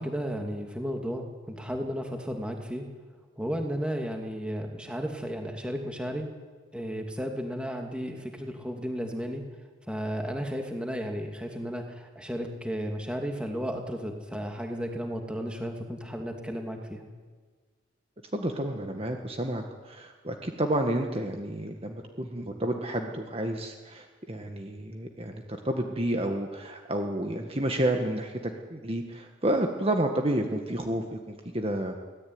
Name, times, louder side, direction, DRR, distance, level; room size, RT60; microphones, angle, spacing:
voice 1, 0.0-2.9 3.4-6.3 6.7-9.4 9.9-17.0, equal, 5° right, 3 dB, 2.7 m, -33 dB
voice 2, 18.3-32.1, right 1 dB, 30° right, 4 dB, 1.7 m, -30 dB
24.0 x 17.5 x 9.7 m, 1.5 s
head